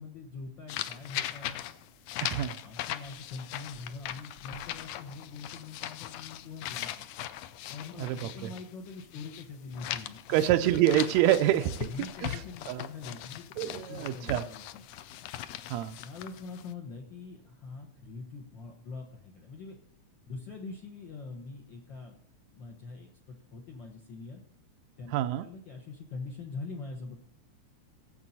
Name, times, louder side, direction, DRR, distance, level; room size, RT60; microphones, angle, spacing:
voice 1, 0.0-1.6 2.6-6.9 7.7-10.3 11.6-14.8 16.0-19.8 20.3-22.2 22.5-24.4 25.0-27.2, left 4 dB, 60° left, 1.2 m, -43 dB
sound 1, 0.7-9.4 9.7-16.7, left 12 dB, 85° left, 1.4 m, -40 dB
voice 2, 2.2-2.6 8.0-8.5 10.3-11.9 12.2-12.4 12.7-12.9 13.6-14.5 15.7-16.0 25.1-25.5, right 12 dB, 80° right, 1.7 m, -27 dB
16.5 x 7.6 x 4.2 m
omnidirectional pair, 3.5 m